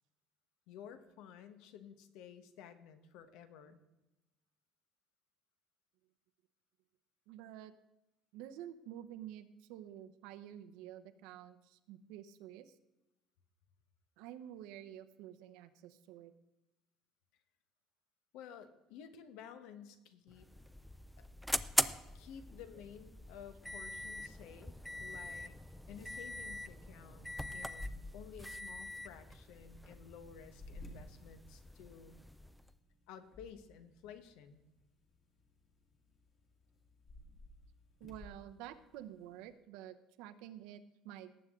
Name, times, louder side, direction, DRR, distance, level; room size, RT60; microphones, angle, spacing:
voice 1, 0.7-3.8 18.3-20.5 21.2-21.3 22.1-25.6 25.9-32.2 33.1-34.6, left 8 dB, 80° left, 10 dB, 1.2 m, -53 dB
voice 2, 7.3-7.7 8.3-12.8 14.2-16.3 38.0-41.3, right 11 dB, 85° right, 10 dB, 0.9 m, -50 dB
sound 1, 20.3-32.7, left 1 dB, ahead, 0.4 m, -42 dB
sound 2, 28.7-39.6, left 1 dB, 35° left, 2.1 m, -60 dB
18.5 x 8.2 x 3.7 m, 0.98 s
cardioid pair, 165°, 0 cm